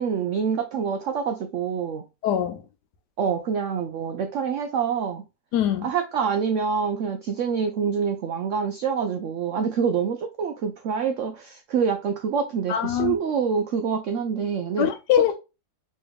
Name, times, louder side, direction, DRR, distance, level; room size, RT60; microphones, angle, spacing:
voice 1, 0.0-2.0 3.2-5.2 5.8-14.9, right 6 dB, 80° right, 0.6 m, -26 dB
voice 2, 2.2-2.6 5.5-5.9 12.7-13.2 14.8-15.3, left 10 dB, 80° left, 1.2 m, -22 dB
3.3 x 3.1 x 3.3 m
omnidirectional pair, 1.8 m